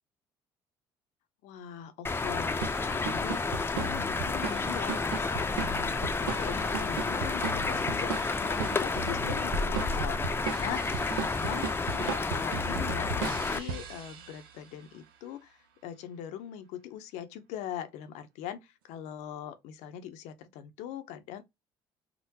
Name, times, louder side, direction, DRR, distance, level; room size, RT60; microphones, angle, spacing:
voice 1, 1.4-21.4, left 10 dB, 75° left, 0.5 m, -41 dB
sound 1, 2.0-13.6, left 3 dB, 20° left, 0.5 m, -31 dB
sound 2, 2.6-14.6, right 5 dB, 90° right, 0.4 m, -37 dB
3.6 x 2.0 x 2.8 m
hypercardioid pair, 60°, 12 cm